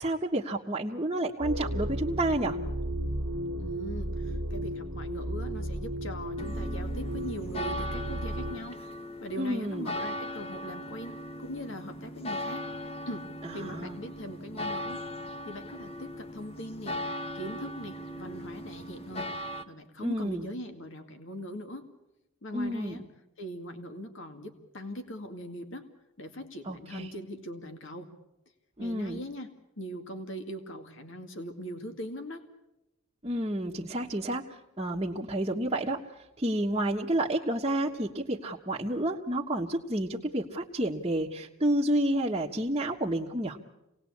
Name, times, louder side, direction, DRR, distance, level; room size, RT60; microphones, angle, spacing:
voice 1, 0.0-2.6 9.4-9.9 13.4-14.0 20.0-20.5 22.5-23.0 26.7-27.1 28.8-29.2 33.2-34.4 34.8-36.0 36.4-43.6, right 1 dB, 25° right, -5 dB, 1.3 m, -30 dB
sound 1, 1.4-8.6, right 1 dB, 75° right, 1.9 m, -34 dB
voice 2, 3.6-8.8 9.2-11.1 11.4-12.6 13.1-15.0 15.5-17.0 17.3-19.3 19.7-21.8 22.4-23.0 23.4-25.8 26.2-28.1 28.8-29.5 29.8-32.4, equal, 60° left, 7 dB, 2.2 m, -41 dB
sound 2, 6.4-19.6, left 1 dB, 25° left, 1.1 m, -38 dB
27.5 x 19.0 x 8.6 m, 0.94 s
head